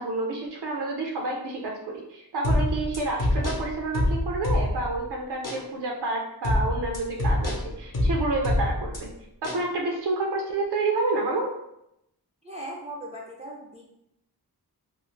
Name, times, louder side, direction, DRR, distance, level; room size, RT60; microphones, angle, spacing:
voice 1, 0.0-9.1 9.4-11.5, right 2 dB, 85° right, 0 dB, 0.5 m, -29 dB
sound 1, 2.4-5.0 5.4-5.6 6.4-9.0 9.4-9.6, left 1 dB, 55° left, 0.7 m, -25 dB
voice 2, 12.4-13.9, right 1 dB, 20° right, -4 dB, 0.4 m, -39 dB
2.4 x 2.3 x 3.1 m, 0.82 s
wide cardioid pair, 100°, 39 cm